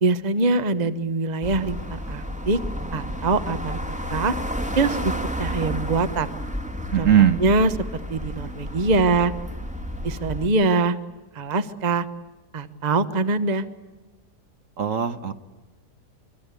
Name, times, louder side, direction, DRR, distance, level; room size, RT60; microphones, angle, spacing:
voice 1, 0.0-2.6 2.9-3.8 4.1-4.3 4.8-5.1 5.4-6.3 7.0-7.1 7.4-9.3 10.0-11.0 11.3-12.1 12.5-13.6, right 3 dB, 30° right, 11 dB, 1.1 m, -23 dB
sound 1, 1.4-10.5, equal, 5° right, 1.5 m, -31 dB
voice 2, 6.9-7.4 14.8-15.4, right 9 dB, 55° right, 9 dB, 1.4 m, -19 dB
24.5 x 24.0 x 8.3 m, 1.2 s
omnidirectional pair, 1.7 m